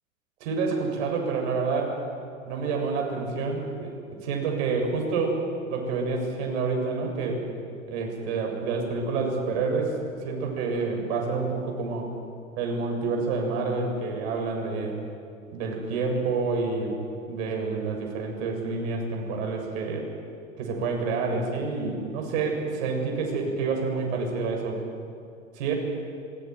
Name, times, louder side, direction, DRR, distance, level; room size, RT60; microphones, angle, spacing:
voice 1, 0.4-2.0 2.4-3.9 4.2-5.4 5.7-7.4 7.9-12.1 12.6-15.0 15.5-17.0 17.3-20.1 20.6-24.8 25.6-25.7, right 4 dB, 55° right, 1 dB, 7.5 m, -28 dB
26.5 x 22.5 x 9.6 m, 2.4 s
figure-of-eight pair, 90°, 40 cm